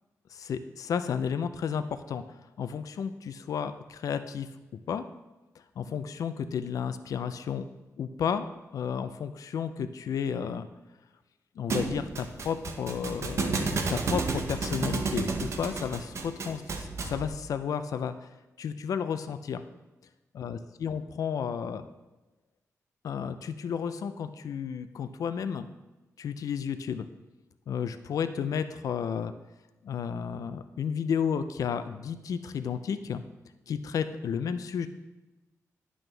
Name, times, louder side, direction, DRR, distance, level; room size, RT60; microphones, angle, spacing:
voice 1, 0.3-2.2 2.6-4.5 4.9-5.0 5.8-7.6 8.0-8.5 8.7-10.7 11.6-18.3 18.6-19.6 20.3-21.9 23.0-25.7 26.2-27.1 27.7-29.3 29.8-33.2 33.7-34.9, left 7 dB, 75° left, 11 dB, 0.4 m, -32 dB
Thump thud, 11.7-17.3, right 4 dB, 55° right, 0.8 m, -31 dB
10.5 x 6.2 x 3.3 m, 1.1 s
wide cardioid pair, 170°, 6 cm